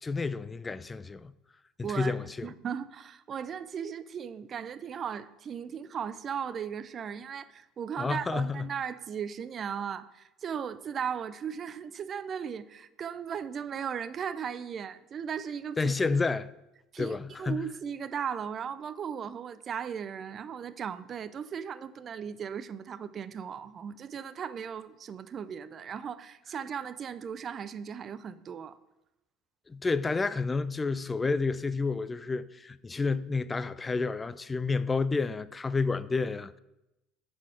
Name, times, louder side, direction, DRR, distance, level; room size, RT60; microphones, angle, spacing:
voice 1, 0.0-1.3 1.8-2.5 8.0-8.7 15.8-16.5 17.0-17.6 29.7-36.6, left 4 dB, 20° left, 0.4 m, -30 dB
voice 2, 1.8-2.2 2.4-16.2 16.9-28.8, right 7 dB, 45° right, 0.4 m, -37 dB
7.3 x 4.4 x 4.9 m
hypercardioid pair, 75°, 0 cm